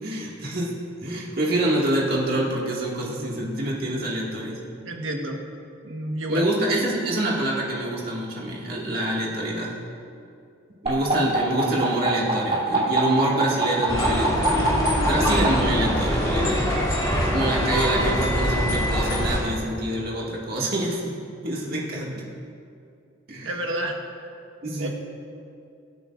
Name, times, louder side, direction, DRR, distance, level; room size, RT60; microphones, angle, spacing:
voice 1, 0.0-4.7 6.3-9.8 10.8-16.7 17.3-21.2 21.4-22.2 23.3-23.6 24.6-24.9, right 1 dB, 50° right, -4 dB, 2.1 m, -26 dB
voice 2, 4.8-5.4 5.8-6.5 23.4-24.0 24.8-24.9, right 1 dB, 75° right, 2 dB, 1.4 m, -29 dB
sound 1, 10.9-15.5 16.6-18.9, right 2 dB, 30° right, 3.0 m, -27 dB
sound 2, 13.9-19.4, equal, 15° left, 1.7 m, -24 dB
23.5 x 8.8 x 2.5 m, 2.5 s
head